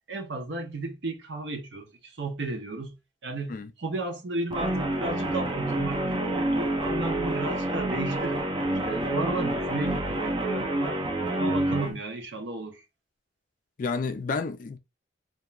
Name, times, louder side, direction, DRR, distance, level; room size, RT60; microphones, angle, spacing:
voice 1, 0.1-2.9 3.2-8.4 8.8-11.0 11.4-12.8, right 2 dB, 65° right, 0.6 m, -34 dB
Guitar, 4.5-11.9, right 1 dB, 25° right, 0.4 m, -28 dB
voice 2, 13.8-14.8, left 4 dB, 45° left, 0.3 m, -31 dB
2.3 x 2.2 x 2.9 m
head